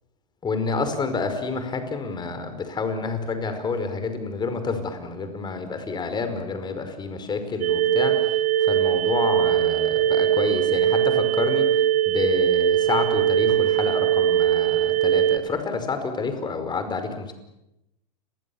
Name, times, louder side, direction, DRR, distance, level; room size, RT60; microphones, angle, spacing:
voice 1, 0.4-11.7 12.1-17.3, left 4 dB, 20° left, 8 dB, 5.1 m, -28 dB
sound 1, 7.6-15.4, right 11 dB, 70° right, 2.7 m, -21 dB
30.0 x 23.0 x 7.2 m, 0.89 s
hypercardioid pair, 110°, 21 cm